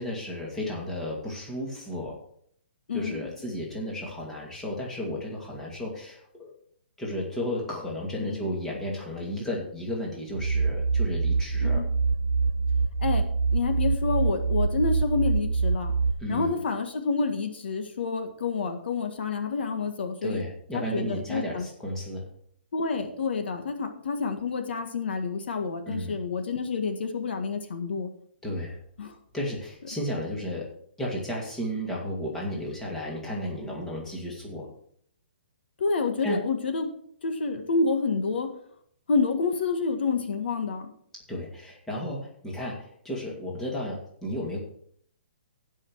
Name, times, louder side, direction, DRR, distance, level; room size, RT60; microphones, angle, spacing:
voice 1, 0.0-2.2 2.9-6.5 7.0-11.8 16.2-16.5 20.2-22.3 25.9-26.2 28.4-28.8 29.3-30.7 31.0-34.7 36.2-36.4 41.3-44.6, equal, 5° left, -3 dB, 2.3 m, -33 dB
voice 2, 2.9-3.2 8.2-8.4 11.6-11.9 13.0-13.3 13.5-15.9 16.3-20.4 20.7-21.7 22.7-28.1 29.0-29.1 35.8-36.9 37.2-38.5 39.1-40.9, left 4 dB, 70° left, 6 dB, 1.7 m, -28 dB
sound 1, 10.3-16.1, right 4 dB, 80° right, 0.8 m, -25 dB
16.0 x 5.6 x 4.7 m, 0.64 s
hypercardioid pair, 160°, 6 cm